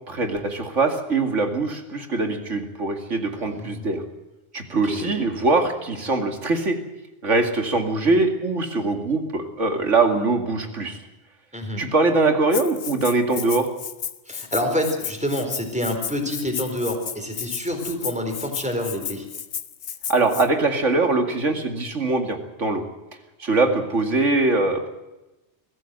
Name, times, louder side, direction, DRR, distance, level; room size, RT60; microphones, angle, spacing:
voice 1, 0.1-4.0 4.5-6.8 7.2-11.0 11.8-13.7 20.1-22.8 23.4-24.9, right 3 dB, 85° right, 5 dB, 2.7 m, -22 dB
voice 2, 3.4-3.9 4.7-5.2 11.5-11.8 14.3-19.3, equal, 5° right, 4 dB, 4.2 m, -27 dB
Rattle (instrument), 12.5-20.5, left 8 dB, 75° left, 1.2 m, -33 dB
23.0 x 15.5 x 7.9 m, 1.0 s
omnidirectional pair, 1.2 m